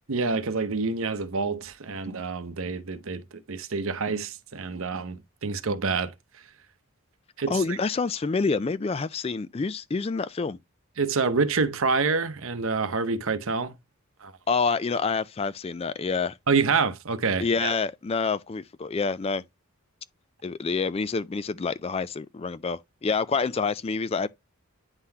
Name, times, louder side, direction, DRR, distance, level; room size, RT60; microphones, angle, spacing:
voice 1, 0.1-6.1 7.4-7.8 11.0-13.8 14.2-14.3 16.5-17.7, right 4 dB, 65° right, 0.7 m, -27 dB
voice 2, 7.5-10.6 14.5-16.4 17.4-19.4 20.4-24.3, left 4 dB, 25° left, 0.3 m, -27 dB
9.7 x 3.8 x 2.8 m
head